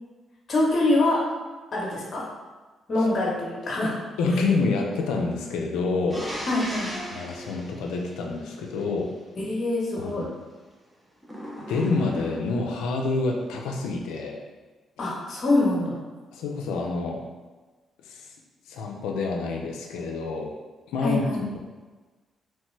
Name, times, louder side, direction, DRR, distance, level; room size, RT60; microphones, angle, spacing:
voice 1, 0.5-1.2 1.7-2.2 2.9-3.9 6.5-6.9 9.4-10.3 15.0-16.0 21.0-21.4, left 2 dB, 50° left, -4 dB, 0.8 m, -24 dB
voice 2, 4.2-6.3 7.1-9.1 10.0-10.1 11.7-14.4 16.3-17.2 18.0-18.3 18.7-20.5 20.9-21.6, left 3 dB, 85° left, 1 dB, 0.3 m, -27 dB
sound 1, 6.1-8.8 11.2-12.7, equal, 10° right, 0.8 m, -37 dB
3.0 x 2.1 x 3.1 m, 1.3 s
supercardioid pair, 60°, 0 cm